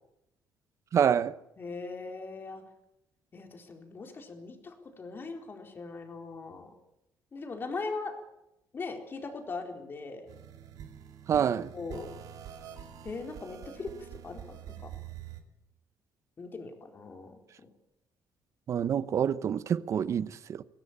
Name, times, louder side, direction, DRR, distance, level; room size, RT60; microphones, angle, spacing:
voice 1, 0.9-1.4 11.3-11.7 18.7-20.6, right 8 dB, 50° right, 0.9 m, -27 dB
voice 2, 1.6-2.6 3.3-6.7 7.3-8.1 8.7-10.3 11.3-11.4 11.7-12.1 13.0-14.9 16.4-17.4, left 3 dB, 35° left, 4.2 m, -40 dB
sound 1, 10.3-15.4, right 10 dB, 65° right, 2.7 m, -46 dB
22.5 x 17.0 x 8.8 m
cardioid pair, 125°, 7 cm